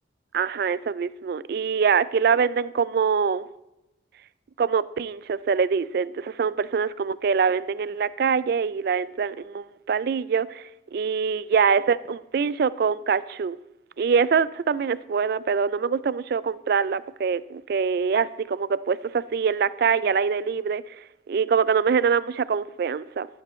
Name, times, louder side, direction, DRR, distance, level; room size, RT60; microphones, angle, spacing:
voice 1, 0.3-3.5 4.6-13.6 14.0-20.8 21.3-23.3, right 6 dB, 55° right, 0.3 m, -24 dB
12.0 x 12.0 x 3.1 m
head